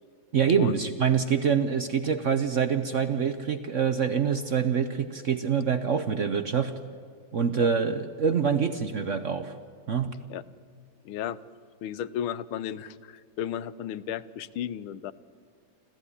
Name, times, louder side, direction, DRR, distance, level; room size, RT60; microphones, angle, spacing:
voice 1, 0.3-6.7 7.3-9.5 9.9-10.1, right 7 dB, 55° right, 9 dB, 0.9 m, -25 dB
voice 2, 11.0-11.4 11.8-15.1, left 10 dB, 85° left, 16 dB, 1.6 m, -34 dB
29.5 x 14.0 x 9.8 m, 2.1 s
omnidirectional pair, 2.2 m